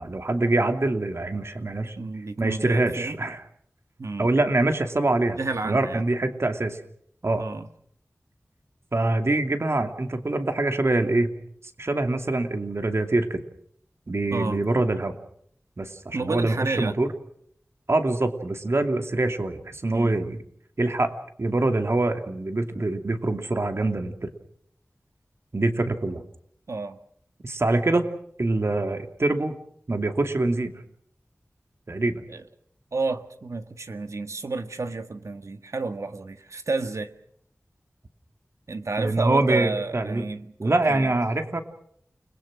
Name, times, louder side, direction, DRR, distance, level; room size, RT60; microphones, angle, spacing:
voice 1, 0.0-2.0 2.4-3.4 4.2-5.4 5.6-6.8 7.2-7.5 8.9-11.3 11.8-13.4 14.1-15.2 15.8-17.1 17.9-20.4 20.8-21.1 21.4-24.3 25.5-26.2 27.4-28.1 28.4-29.6 29.9-30.7 31.9-32.2 39.0-40.2 40.6-41.6, right 2 dB, 60° right, 2.5 m, -24 dB
voice 2, 2.0-3.2 4.0-4.3 5.4-6.0 7.4-7.7 14.3-14.6 16.1-17.0 19.9-20.1 26.7-27.0 32.3-32.4 32.9-37.1 38.7-41.1, right 3 dB, 85° right, 1.6 m, -31 dB
30.0 x 21.5 x 6.2 m
wide cardioid pair, 70°, 5 cm